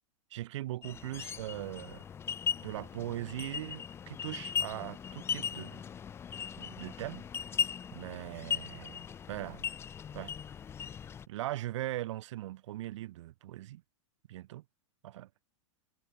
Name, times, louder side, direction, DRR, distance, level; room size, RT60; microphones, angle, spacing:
voice 1, 0.3-2.0 2.6-5.8 6.6-7.3 7.9-9.0 9.3-9.6 10.1-10.3 11.3-13.8 14.3-14.6 15.0-15.3, right 15 dB, 65° right, 0.7 m, -40 dB
sound 1, 0.8-11.3, left 7 dB, 15° left, 0.7 m, -38 dB
hypercardioid pair, 145°, 16 cm